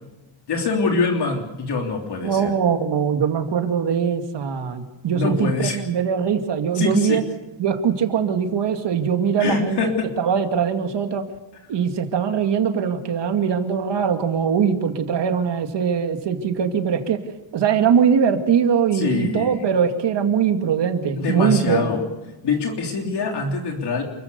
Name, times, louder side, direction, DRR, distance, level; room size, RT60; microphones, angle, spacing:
voice 1, 0.5-2.5 5.1-5.8 6.7-7.2 9.4-10.1 18.9-19.7 21.2-22.0 22.4-24.0, left 4 dB, 55° left, 1 dB, 3.4 m, -24 dB
voice 2, 2.2-7.2 7.6-9.8 10.2-11.2 11.7-17.2 17.5-21.9, right 7 dB, 60° right, 6 dB, 2.4 m, -21 dB
28.5 x 15.0 x 7.0 m, 1.0 s
cardioid pair, 135°, 47 cm